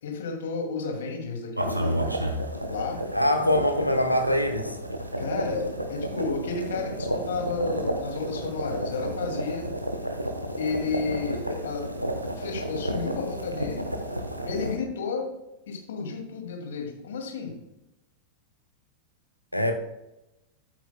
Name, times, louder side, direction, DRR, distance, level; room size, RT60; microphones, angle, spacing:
voice 1, 0.0-2.1 2.7-3.0 5.2-9.7 10.6-11.9 12.4-13.9 14.5-15.3 15.7-17.5, left 4 dB, 60° left, 1 dB, 2.2 m, -32 dB
sound 1, 1.6-14.7, right 1 dB, 85° right, 0.9 m, -31 dB
voice 2, 3.1-4.8 19.5-19.7, left 1 dB, 90° left, 6 dB, 1.0 m, -23 dB
11.5 x 8.6 x 2.2 m, 0.92 s
figure-of-eight pair, 90°, 0 cm